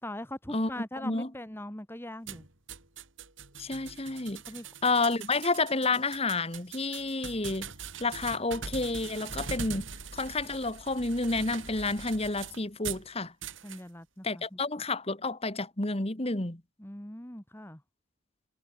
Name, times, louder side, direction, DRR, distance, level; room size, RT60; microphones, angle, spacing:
voice 1, 0.0-2.5 4.5-4.7 13.6-14.6 16.8-17.8, left 1 dB, 10° left, 1.5 m, -41 dB
sound 1, 2.3-13.1 13.4-13.8, right 6 dB, 65° right, 5.5 m, -42 dB
voice 2, 3.6-4.4 4.8-7.7 8.0-9.9 10.1-13.3 14.2-16.6, left 3 dB, 30° left, 1.8 m, -30 dB
head